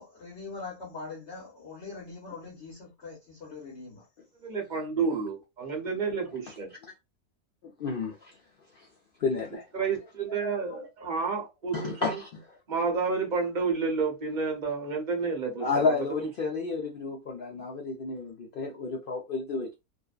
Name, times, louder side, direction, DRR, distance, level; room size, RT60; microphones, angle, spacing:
voice 1, 0.0-4.0 10.3-10.8, left 4 dB, 55° left, 1.1 m, -42 dB
voice 2, 4.4-6.7 9.7-12.2 12.7-15.9, right 5 dB, 45° right, 0.7 m, -30 dB
voice 3, 7.8-8.3 8.7-8.9 9.2-9.7 11.7-12.3 15.6-19.7, left 4 dB, 85° left, 0.4 m, -31 dB
2.6 x 2.1 x 2.3 m
omnidirectional pair, 1.5 m